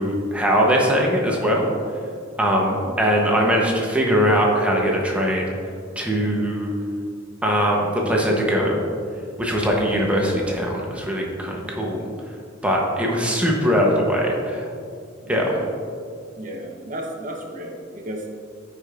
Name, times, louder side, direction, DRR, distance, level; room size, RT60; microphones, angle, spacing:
voice 1, 0.0-1.7 2.4-5.5 6.0-6.7 7.4-8.8 9.4-12.0 12.6-14.6 15.3-15.5, equal, 5° right, -2 dB, 0.8 m, -21 dB
voice 2, 11.6-12.0 15.2-15.7 16.4-18.3, right 1 dB, 40° right, 0 dB, 0.9 m, -34 dB
13.5 x 5.0 x 2.5 m, 2.4 s
head